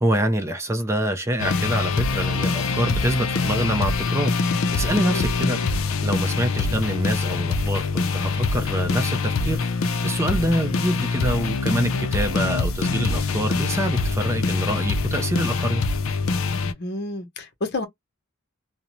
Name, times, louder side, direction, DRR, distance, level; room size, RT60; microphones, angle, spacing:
voice 1, 0.0-4.3 4.7-5.6 6.0-15.8, right 1 dB, 15° right, 0.4 m, -25 dB
sound 1, 1.4-16.7, left 4 dB, 70° left, 0.5 m, -24 dB
voice 2, 16.6-17.9, left 2 dB, 55° left, 0.8 m, -30 dB
2.5 x 2.0 x 2.9 m
head